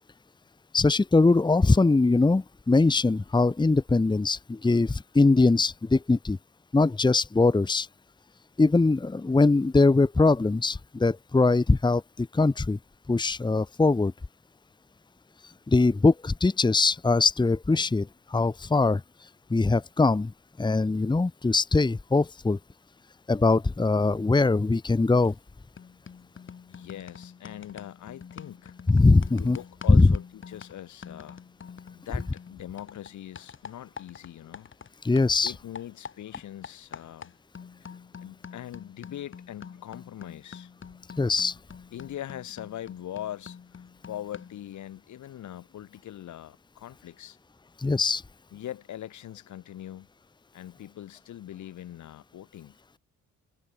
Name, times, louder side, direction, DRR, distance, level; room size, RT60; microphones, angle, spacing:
voice 1, 0.7-6.4 6.7-7.9 8.6-12.8 13.1-14.1 15.7-19.0 19.5-20.3 20.6-22.6 23.3-25.3 28.9-29.6 29.9-30.1 35.0-35.5 41.2-41.6 47.8-48.2, left 3 dB, 15° left, 1.2 m, -22 dB
sound 1, 25.2-25.5 25.8-34.9 35.2-44.6, left 6 dB, 40° left, 3.4 m, -46 dB
voice 2, 26.7-28.7 29.3-31.4 31.9-34.7 35.4-37.3 37.8-37.9 38.2-40.7 41.9-47.4 48.5-50.1 50.5-52.8, left 11 dB, 70° left, 3.8 m, -41 dB
cardioid pair, 90°, 30 cm